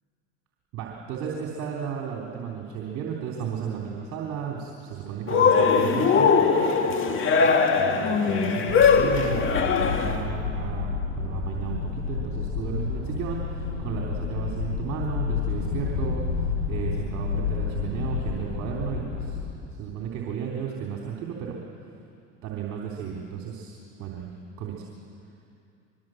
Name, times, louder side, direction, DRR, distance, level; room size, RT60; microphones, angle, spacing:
voice 1, 0.7-19.4 19.7-21.6 22.4-24.8, right 7 dB, 50° right, -1 dB, 3.5 m, -34 dB
Cheering, 5.3-10.2, left 5 dB, 35° left, 2.3 m, -21 dB
sound 1, 8.7-19.6, left 5 dB, 70° left, 7.6 m, -30 dB
23.5 x 22.0 x 7.8 m, 2.5 s
hypercardioid pair, 90°, 37 cm